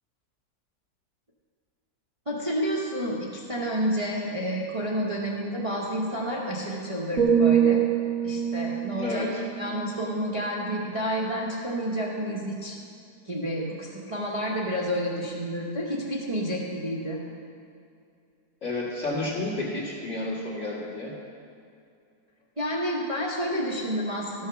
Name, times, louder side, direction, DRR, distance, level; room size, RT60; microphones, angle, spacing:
voice 1, 2.3-7.8 8.2-9.3 9.6-12.8 13.3-17.2 22.6-24.5, equal, 25° right, -4 dB, 0.9 m, -30 dB
sound 1, 7.2-11.1 11.5-11.8, right 8 dB, 65° right, 1.4 m, -26 dB
voice 2, 9.0-9.4 18.6-21.1, left 2 dB, 50° left, -5 dB, 2.4 m, -31 dB
13.0 x 6.5 x 5.8 m, 2.4 s
omnidirectional pair, 1.7 m